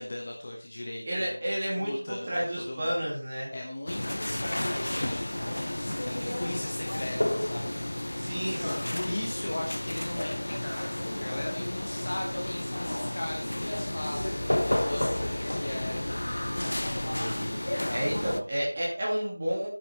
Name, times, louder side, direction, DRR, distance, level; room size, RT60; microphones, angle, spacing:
voice 1, 0.0-1.4 1.8-16.1, left 1 dB, 20° left, 0 dB, 1.1 m, -38 dB
voice 2, 1.1-3.5 6.5-6.6 8.2-8.9 16.9-17.5 17.9-19.7, equal, 15° right, -5 dB, 2.7 m, -31 dB
sound 1, 3.9-18.4, left 1 dB, 50° left, 0.8 m, -31 dB
10.5 x 8.8 x 4.4 m, 0.38 s
figure-of-eight pair, 180°, 0 cm